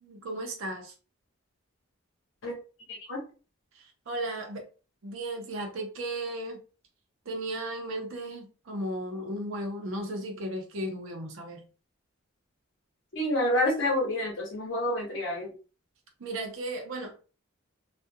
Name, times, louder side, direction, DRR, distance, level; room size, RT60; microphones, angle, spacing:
voice 1, 0.0-0.9 3.7-4.6 5.0-6.6 7.3-11.6 16.2-17.1, right 1 dB, 75° right, 0.6 m, -35 dB
voice 2, 2.9-3.2 13.1-15.5, left 1 dB, 65° left, 0.9 m, -28 dB
2.3 x 2.1 x 2.6 m
head